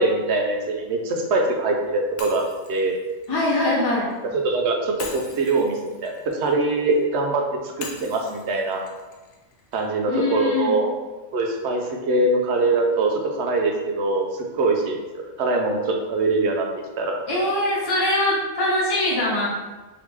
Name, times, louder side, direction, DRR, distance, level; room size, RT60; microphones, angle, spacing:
voice 1, 0.0-2.4 2.7-2.9 4.3-8.8 9.7-10.9 11.3-14.3 14.5-16.7 17.0-17.2, right 2 dB, 70° right, 2 dB, 0.9 m, -23 dB
Shatter, 2.2-4.2 5.0-7.1 7.8-9.9, left 4 dB, 65° left, 0.9 m, -42 dB
voice 2, 3.3-4.1 10.1-10.8 17.3-19.5, left 1 dB, 25° left, -7 dB, 0.8 m, -22 dB
3.8 x 3.2 x 3.5 m, 1.2 s
omnidirectional pair, 1.2 m